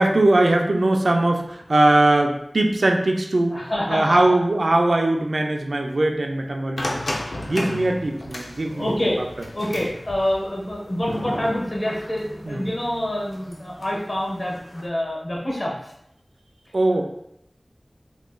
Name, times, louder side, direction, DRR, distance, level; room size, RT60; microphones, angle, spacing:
voice 1, 0.0-3.6 3.9-7.0 7.5-8.9 12.5-12.7 16.7-17.0, right 2 dB, 75° right, 3 dB, 0.4 m, -20 dB
voice 2, 3.5-4.4 7.4-7.7 8.6-9.2 9.5-15.9, left 1 dB, 50° left, -3 dB, 1.1 m, -26 dB
sound 1, 6.8-14.9, left 1 dB, 75° left, 0.5 m, -35 dB
3.6 x 2.9 x 2.2 m, 0.76 s
wide cardioid pair, 45°, 0 cm